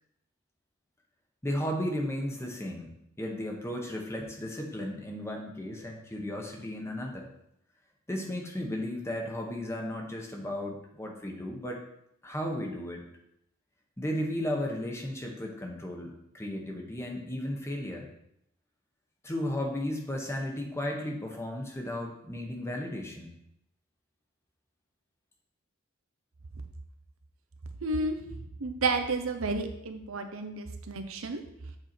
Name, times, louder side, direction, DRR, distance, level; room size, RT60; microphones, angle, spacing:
voice 1, 1.4-2.9 3.2-7.3 8.1-11.8 12.2-13.0 14.0-18.1 19.2-23.3, left 1 dB, 15° left, 1 dB, 1.0 m, -34 dB
voice 2, 27.8-28.2 28.6-31.4, right 3 dB, 80° right, 6 dB, 0.8 m, -31 dB
7.9 x 4.5 x 4.4 m, 0.78 s
head